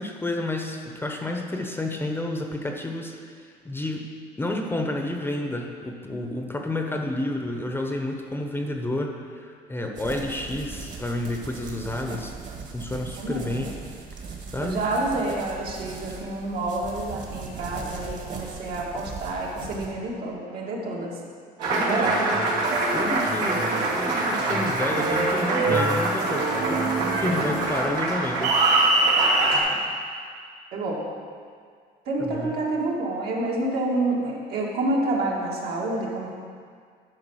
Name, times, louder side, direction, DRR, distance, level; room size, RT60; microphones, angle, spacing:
voice 1, 0.0-3.4 3.6-4.1 4.4-12.3 12.7-13.7 14.5-14.9 21.7-22.1 22.9-23.7 23.9-28.6 32.2-32.6, left 1 dB, 15° left, 2 dB, 0.9 m, -30 dB
sound 1, 9.9-19.9, right 5 dB, 50° right, 1.8 m, -39 dB
voice 2, 13.2-13.7 14.6-21.1 21.9-22.3 30.7-31.0 32.1-36.3, right 2 dB, 70° right, -3 dB, 2.2 m, -28 dB
Applause, 21.6-29.6, right 2 dB, 85° right, 2.5 m, -23 dB
11.0 x 4.8 x 6.4 m, 2.1 s
cardioid pair, 110°, 17 cm